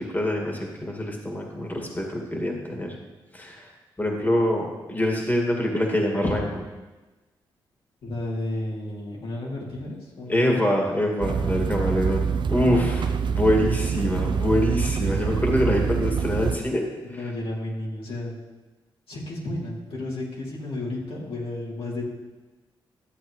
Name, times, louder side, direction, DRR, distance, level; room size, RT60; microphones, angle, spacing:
voice 1, 0.0-2.9 3.3-3.7 4.0-6.6 10.3-16.9, left 1 dB, 20° left, 0 dB, 2.2 m, -25 dB
voice 2, 8.0-10.6 17.1-18.4 19.1-22.1, left 1 dB, 70° left, -5 dB, 2.9 m, -32 dB
sound 1, 11.2-16.6, right 6 dB, 55° right, 0.5 m, -25 dB
13.0 x 7.8 x 3.2 m, 1.2 s
supercardioid pair, 50°, 10 cm